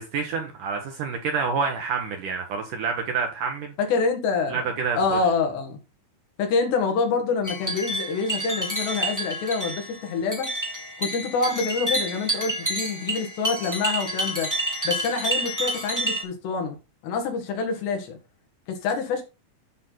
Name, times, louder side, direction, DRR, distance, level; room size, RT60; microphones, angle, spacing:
voice 1, 0.0-3.7 4.5-5.2, right 5 dB, 70° right, 2.0 m, -28 dB
voice 2, 3.8-4.6 4.9-5.8 6.4-10.5 11.0-14.5 14.8-16.8 17.0-18.2 18.7-19.2, left 4 dB, 70° left, 3.8 m, -26 dB
sound 1, 7.4-16.2, right 1 dB, 5° right, 3.2 m, -29 dB
12.0 x 6.0 x 4.0 m
omnidirectional pair, 5.3 m